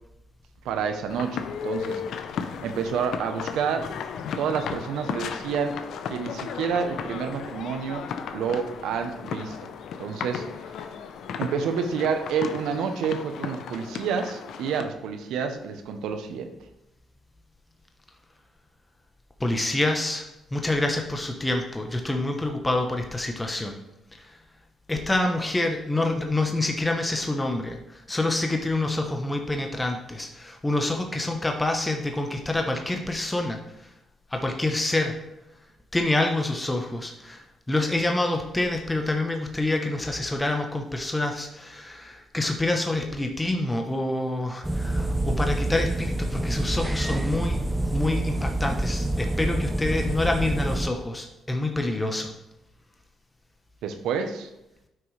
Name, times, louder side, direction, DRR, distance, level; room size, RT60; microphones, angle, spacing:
voice 1, 0.6-2.0 2.6-3.9 4.4-5.8 6.1-8.1 8.3-9.7 10.0-10.5 11.4-16.5 53.8-54.5, right 6 dB, 85° right, 7 dB, 0.9 m, -29 dB
sound 1, 1.1-14.8, left 7 dB, 75° left, 0.6 m, -35 dB
voice 2, 19.4-20.3 20.5-23.8 24.9-33.6 34.3-35.1 35.9-47.6 47.9-52.3, left 2 dB, 15° left, 3 dB, 0.9 m, -27 dB
sound 2, 44.6-50.9, right 1 dB, 10° right, 0.5 m, -27 dB
9.1 x 6.1 x 3.3 m, 0.89 s
cardioid pair, 90°, 0 cm